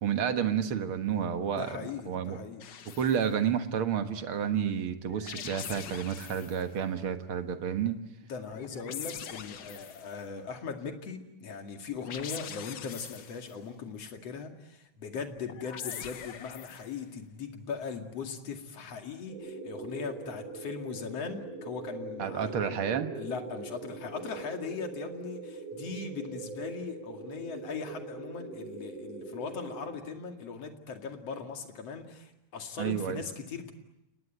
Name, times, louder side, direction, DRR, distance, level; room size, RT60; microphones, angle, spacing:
voice 1, 0.0-1.7 2.1-2.4 3.0-8.0 22.2-23.1 32.8-33.2, right 8 dB, 50° right, 8 dB, 1.9 m, -30 dB
voice 2, 1.6-2.7 8.3-33.7, left 5 dB, 55° left, 5 dB, 3.2 m, -39 dB
sound 1, 2.6-3.3 5.1-6.7 8.5-10.2 11.9-13.6 15.4-17.0, left 8 dB, 75° left, 1.0 m, -43 dB
sound 2, 19.3-29.8, right 3 dB, 75° right, 6.8 m, -42 dB
30.0 x 19.5 x 9.3 m, 0.90 s
omnidirectional pair, 3.6 m